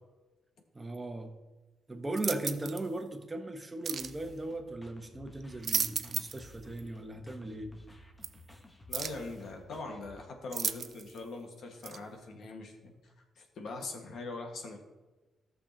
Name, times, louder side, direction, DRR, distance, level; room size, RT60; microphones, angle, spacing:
voice 1, 0.7-1.4 1.9-7.7, right 2 dB, 20° right, 5 dB, 1.2 m, -38 dB
sound 1, 2.1-2.9 3.8-4.2 5.4-6.5 6.8-6.9 8.2-8.3 8.9-9.3 10.5-11.2 11.8-12.0, right 6 dB, 55° right, 0.5 m, -34 dB
sound 2, 4.0-10.3, equal, 20° left, 1.2 m, -55 dB
voice 2, 8.9-12.9 13.4-14.8, left 3 dB, 65° left, 3 dB, 1.7 m, -42 dB
14.0 x 6.7 x 2.9 m, 1.2 s
cardioid pair, 85°, 0 cm